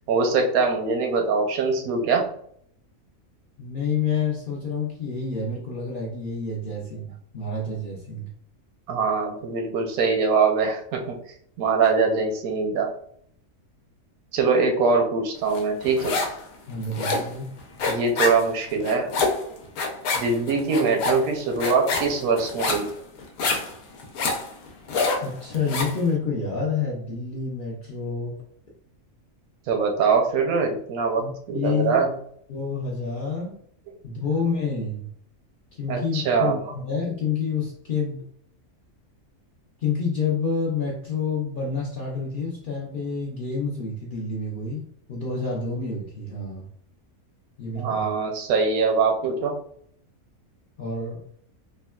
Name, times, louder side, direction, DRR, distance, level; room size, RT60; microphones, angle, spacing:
voice 1, 0.1-2.3 8.9-11.2 11.6-12.9 14.3-16.2 17.9-19.1 20.1-22.9 29.7-32.1 35.9-36.7 47.8-49.6, right 4 dB, 85° right, 4 dB, 1.1 m, -23 dB
voice 2, 3.6-8.3 16.7-17.5 25.2-28.4 31.2-32.0 32.5-33.5 34.0-35.1 35.7-38.3 39.8-46.7 47.6-48.1 50.8-51.2, left 4 dB, 55° left, -4 dB, 0.6 m, -28 dB
sound 1, 15.5-16.4 16.7-26.0, left 3 dB, 85° left, 1.1 m, -27 dB
3.6 x 2.2 x 2.3 m, 0.64 s
omnidirectional pair, 1.5 m